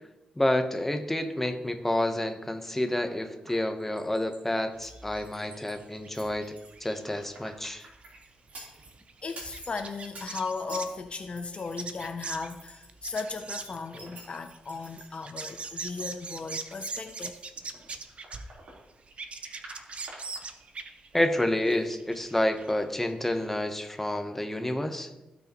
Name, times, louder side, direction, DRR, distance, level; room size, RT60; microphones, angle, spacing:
voice 1, 0.4-6.5 6.8-7.9 21.1-25.1, left 1 dB, 10° left, 7 dB, 0.9 m, -29 dB
sound 1, 2.7-4.4 4.8-5.8 6.1-8.9 9.2-13.2 13.6-18.8 19.1-21.5 21.7-21.8, right 2 dB, 70° right, 3.6 m, -50 dB
sound 2, 4.7-11.0 11.5-18.8 19.1-22.7 23.0-23.1 23.3-23.4, right 4 dB, 50° right, 0.7 m, -41 dB
voice 2, 9.2-17.4, left 4 dB, 45° left, 8 dB, 0.5 m, -36 dB
16.0 x 6.2 x 3.0 m, 0.99 s
cardioid pair, 95°, 3 cm